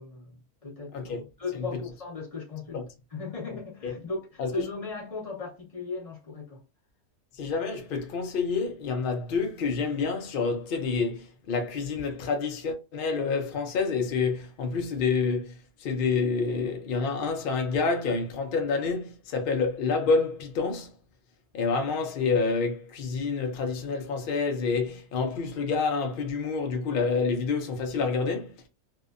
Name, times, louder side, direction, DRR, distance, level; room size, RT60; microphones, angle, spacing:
voice 1, 0.0-2.8 3.1-6.6, left 3 dB, 25° left, 1.1 m, -37 dB
voice 2, 0.9-1.2 2.7-2.8 3.8-3.9 4.4-4.6 7.4-20.9 21.5-28.6, left 4 dB, 75° left, 0.5 m, -28 dB
2.7 x 2.1 x 2.4 m
omnidirectional pair, 1.5 m